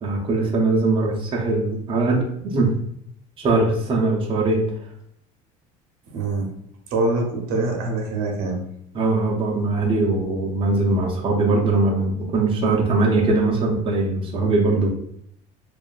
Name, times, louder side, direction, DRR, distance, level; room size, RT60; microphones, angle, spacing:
voice 1, 0.0-2.7 3.4-4.6 8.9-14.9, right 3 dB, 35° right, -2 dB, 0.6 m, -21 dB
voice 2, 6.1-6.5 6.9-8.6, right 2 dB, 70° right, 1 dB, 0.7 m, -24 dB
2.6 x 2.2 x 2.4 m, 0.70 s
supercardioid pair, 105°, 16 cm